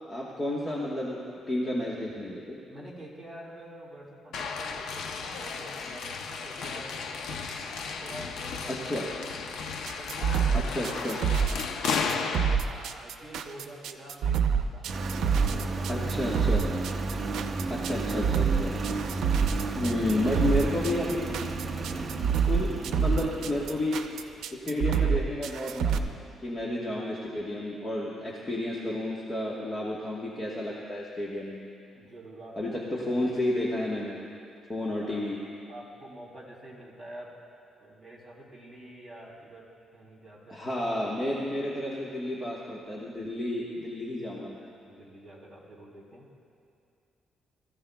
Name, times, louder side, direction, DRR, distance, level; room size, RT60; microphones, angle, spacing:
voice 1, 0.1-2.6 8.8-9.1 10.5-11.2 15.9-16.7 17.7-21.4 22.5-24.0 24.5-26.1 26.4-31.7 32.6-34.2 34.7-35.4 40.5-44.7, left 1 dB, 20° left, -5 dB, 1.3 m, -31 dB
voice 2, 2.7-8.9 9.9-14.9 15.2-16.1 31.9-32.8 34.7-35.2 35.7-37.3 37.8-40.8 44.9-46.4, right 1 dB, ahead, -6 dB, 3.2 m, -47 dB
sound 1, 4.3-12.6, left 5 dB, 70° left, 0.8 m, -34 dB
sound 2, 9.9-26.0, right 7 dB, 80° right, 0.6 m, -27 dB
Engine, 14.9-24.3, right 3 dB, 30° right, 0.6 m, -33 dB
22.5 x 14.5 x 2.3 m, 2.5 s
cardioid pair, 150°, 0 cm